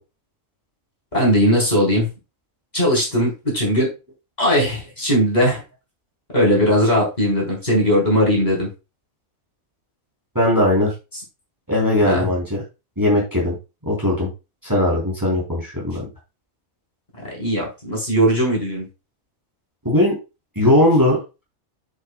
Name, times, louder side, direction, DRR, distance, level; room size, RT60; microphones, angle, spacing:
voice 1, 1.1-2.1 2.7-3.9 4.4-5.6 6.3-8.7 12.0-12.3 17.2-18.9, equal, 30° left, -3 dB, 4.1 m, -19 dB
voice 2, 10.4-10.9 11.7-12.6 13.0-13.6 13.8-14.3 14.6-16.0 19.8-20.2 20.6-21.2, left 1 dB, 15° right, -3 dB, 3.5 m, -18 dB
8.0 x 7.6 x 2.3 m, 0.27 s
omnidirectional pair, 1.4 m